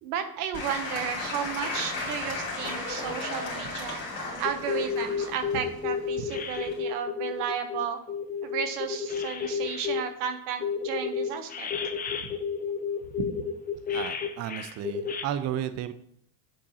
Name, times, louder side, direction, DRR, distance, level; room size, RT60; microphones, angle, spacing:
voice 1, 0.0-4.0 4.4-8.0 8.4-11.7 13.2-13.3, right 8 dB, 75° right, 8 dB, 0.9 m, -33 dB
Applause / Crowd, 0.5-6.8, left 3 dB, 40° left, 2.4 m, -35 dB
sound 1, 4.4-10.1 10.6-15.2, left 6 dB, 20° left, 0.5 m, -31 dB
voice 2, 13.9-15.9, right 11 dB, 40° right, 12 dB, 0.4 m, -33 dB
7.3 x 4.5 x 2.8 m, 0.66 s
supercardioid pair, 90°, 46 cm